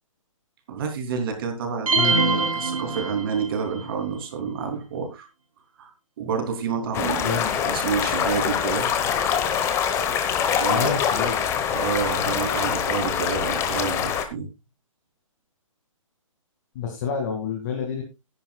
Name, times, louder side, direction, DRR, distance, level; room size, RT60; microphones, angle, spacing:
voice 1, 0.7-2.1 2.5-5.3 5.8-5.9 6.2-8.9 10.5-10.9 11.7-14.5, right 6 dB, 40° right, 5 dB, 3.1 m, -29 dB
sound 1, 1.9-3.7, right 4 dB, 90° right, 3.5 m, -23 dB
voice 2, 2.0-2.5 7.0-7.5 10.7-11.4 16.7-18.0, left 6 dB, 35° left, 2 dB, 2.3 m, -28 dB
sound 2, 6.9-14.3, left 8 dB, 15° left, 1.1 m, -24 dB
14.5 x 10.5 x 2.3 m, 0.24 s
hypercardioid pair, 155°, 17 cm